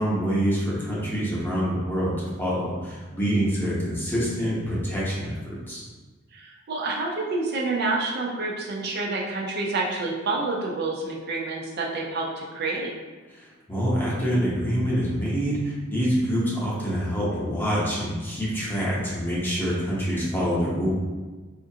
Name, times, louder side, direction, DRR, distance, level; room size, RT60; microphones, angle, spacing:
voice 1, 0.0-5.8 13.3-20.9, equal, 10° left, -7 dB, 0.8 m, -26 dB
voice 2, 6.3-12.9, right 3 dB, 50° right, -2 dB, 0.5 m, -28 dB
4.3 x 2.4 x 2.7 m, 1.3 s
head